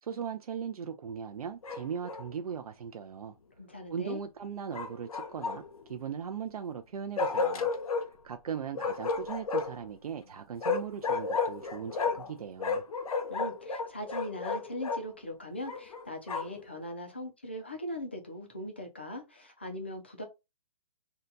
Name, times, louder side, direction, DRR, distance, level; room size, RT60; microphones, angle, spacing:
voice 1, 0.0-3.4 3.9-7.7 8.2-12.8, right 7 dB, 75° right, 0.5 m, -39 dB
Bark, 1.6-2.3 4.7-5.8 7.2-8.1 8.7-9.8 10.6-12.3 12.6-15.0 15.7-16.6, left 4 dB, 70° left, 0.7 m, -32 dB
voice 2, 3.6-4.2 13.3-20.2, left 1 dB, 20° left, 0.3 m, -40 dB
2.7 x 2.2 x 3.7 m
hypercardioid pair, 180°, 19 cm